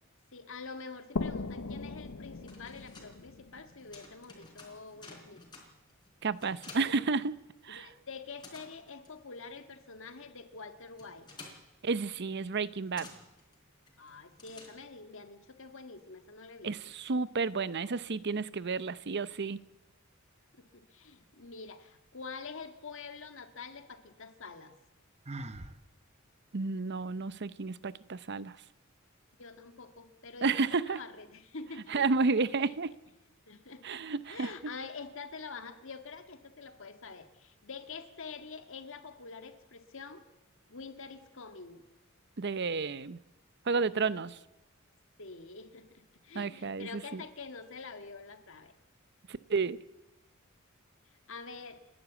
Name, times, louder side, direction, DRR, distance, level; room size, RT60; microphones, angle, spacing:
voice 1, 0.3-5.4 6.8-7.0 7.7-11.3 14.0-16.9 20.5-24.7 29.4-32.3 33.5-40.2 40.7-41.8 45.2-48.7 51.3-51.8, left 4 dB, 65° left, 1.8 m, -46 dB
sound 1, 1.2-4.7, left 3 dB, 80° left, 0.9 m, -39 dB
sound 2, 2.2-7.8 8.1-15.2, left 3 dB, 20° left, 4.4 m, -54 dB
voice 2, 6.2-7.3 7.6-7.9 11.8-13.1 16.6-19.6 26.5-28.6 30.4-31.0 31.9-32.9 33.8-34.5 42.4-43.2 43.7-44.4 46.3-47.2 49.3-49.8, right 4 dB, 55° right, 0.7 m, -31 dB
Sigh, 25.3-25.8, right 2 dB, 30° right, 1.1 m, -41 dB
29.5 x 12.0 x 8.2 m
head